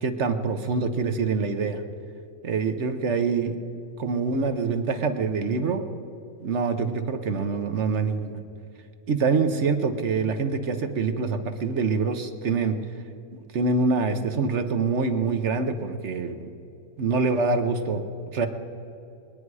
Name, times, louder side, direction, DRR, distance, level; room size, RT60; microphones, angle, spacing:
voice 1, 0.0-1.8 2.4-3.6 4.0-5.8 6.4-8.4 9.1-12.7 13.3-16.5 17.0-18.0 18.3-18.5, right 4 dB, 55° right, 7 dB, 1.1 m, -25 dB
23.0 x 9.7 x 4.8 m, 2.7 s
omnidirectional pair, 1.5 m